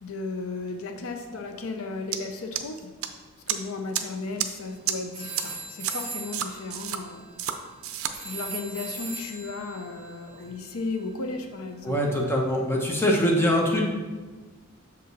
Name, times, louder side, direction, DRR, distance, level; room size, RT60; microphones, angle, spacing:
voice 1, 0.0-2.9 3.5-7.3 8.2-12.0, left 3 dB, 65° left, 5 dB, 0.6 m, -35 dB
sound 1, 2.1-2.2 2.6-3.1 3.5-3.6 3.9-4.0 4.4-4.5 4.9-5.0 5.4-5.5 5.8-5.9 6.3-7.0 7.4-7.5 7.8-8.1, right 10 dB, 65° right, 0.5 m, -28 dB
sound 2, 4.5-4.8 5.1-11.8, right 3 dB, 35° right, 1.1 m, -40 dB
voice 2, 11.8-13.8, equal, 10° left, -1 dB, 1.0 m, -23 dB
6.8 x 5.1 x 4.0 m, 1.3 s
head